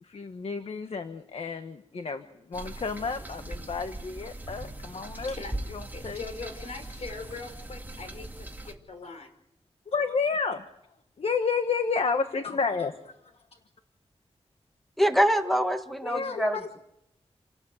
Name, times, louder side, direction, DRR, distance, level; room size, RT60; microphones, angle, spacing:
voice 1, 0.0-5.3 5.7-6.2 9.0-9.1 9.9-10.6 11.2-13.1 16.0-16.8, left 5 dB, 65° left, 8 dB, 1.3 m, -31 dB
sound 1, 2.5-8.7, right 1 dB, 15° right, 2.6 m, -40 dB
voice 2, 5.2-5.6 5.9-9.3, left 4 dB, 85° left, 7 dB, 4.1 m, -41 dB
voice 3, 15.0-16.6, equal, ahead, 6 dB, 1.9 m, -24 dB
28.5 x 17.5 x 8.1 m, 0.82 s
wide cardioid pair, 115°, 11 cm